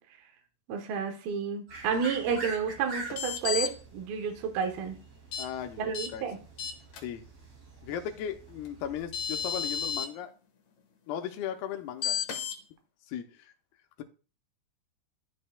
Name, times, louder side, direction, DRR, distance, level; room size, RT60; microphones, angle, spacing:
voice 1, 0.7-5.0 5.8-6.4, right 6 dB, 75° right, 2.7 m, -31 dB
sound 1, 1.7-10.0, right 2 dB, 40° right, 2.8 m, -46 dB
sound 2, 3.1-3.7 5.3-5.5 5.9-6.1 6.6-7.0 8.7-8.8 9.1-10.1 12.0-12.6, left 8 dB, 65° left, 1.9 m, -32 dB
voice 2, 5.4-6.2 7.0-7.3 7.8-10.3 11.1-12.2 13.1-13.5, left 9 dB, 80° left, 2.6 m, -37 dB
12.5 x 5.4 x 2.2 m
omnidirectional pair, 4.7 m